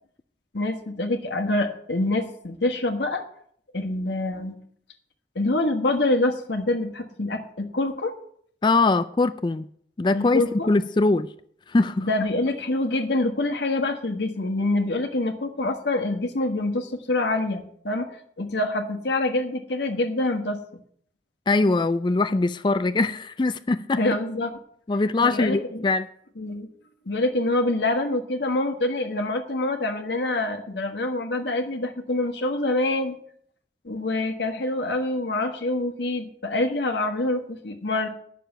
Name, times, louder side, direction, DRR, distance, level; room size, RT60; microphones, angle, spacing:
voice 1, 0.5-3.2 3.7-4.6 5.3-8.1 10.1-10.7 12.0-20.6 24.0-24.6 25.2-25.8 26.4-26.7 27.0-33.2 33.8-38.1, left 2 dB, 70° left, 1.5 m, -26 dB
voice 2, 8.6-9.7 10.0-11.3 11.7-12.1 21.5-24.0 24.9-26.1, left 3 dB, 25° left, 0.3 m, -22 dB
9.4 x 6.7 x 7.8 m
head